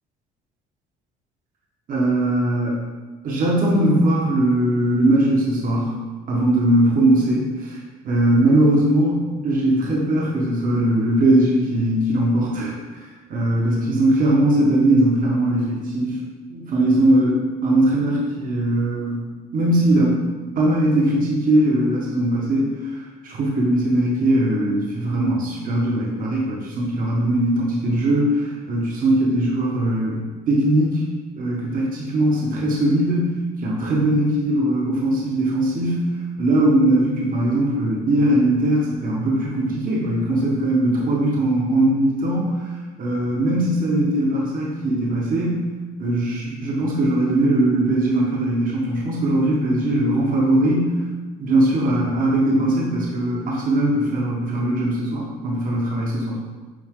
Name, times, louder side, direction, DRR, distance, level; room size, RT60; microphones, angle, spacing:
voice 1, 1.9-2.8 3.2-5.9 6.3-7.8 8.0-16.2 16.5-19.2 19.5-20.2 20.6-31.1 31.4-42.7 43.0-45.7 46.0-50.9 51.4-56.4, right 1 dB, 55° right, -4 dB, 1.7 m, -20 dB
10.0 x 3.5 x 3.9 m, 1.3 s
cardioid pair, 110°, 17 cm